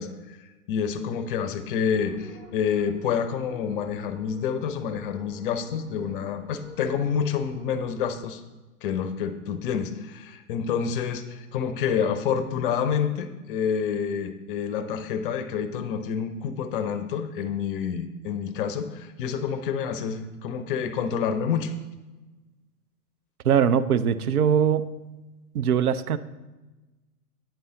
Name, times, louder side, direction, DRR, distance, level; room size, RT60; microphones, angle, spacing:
voice 1, 0.0-8.4 8.8-21.7, left 7 dB, 35° left, 10 dB, 0.6 m, -28 dB
sound 1, 1.9-8.1, left 2 dB, 5° right, 1.0 m, -46 dB
voice 2, 23.4-24.9 25.5-26.2, right 8 dB, 75° right, 13 dB, 0.5 m, -21 dB
9.1 x 5.4 x 3.8 m, 1.2 s
figure-of-eight pair, 110°, 45 cm